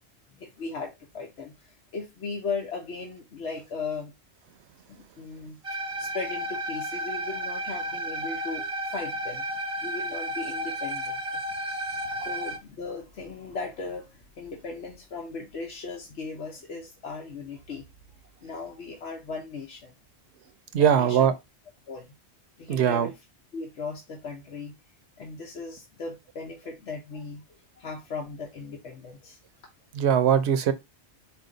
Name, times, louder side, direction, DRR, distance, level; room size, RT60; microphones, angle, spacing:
voice 1, 0.4-4.1 4.9-5.6 6.0-9.4 9.8-11.4 12.2-17.8 18.4-19.9 20.7-21.3 21.9-22.1 22.6-23.2 23.5-24.7 25.2-27.4 27.8-29.4, left 4 dB, 80° left, 1.2 m, -37 dB
sound 1, 5.6-12.6, right 1 dB, 35° right, 0.6 m, -32 dB
voice 2, 20.7-21.3 22.7-23.1 29.9-30.7, right 9 dB, 75° right, 0.9 m, -21 dB
4.3 x 2.9 x 3.8 m
omnidirectional pair, 1.1 m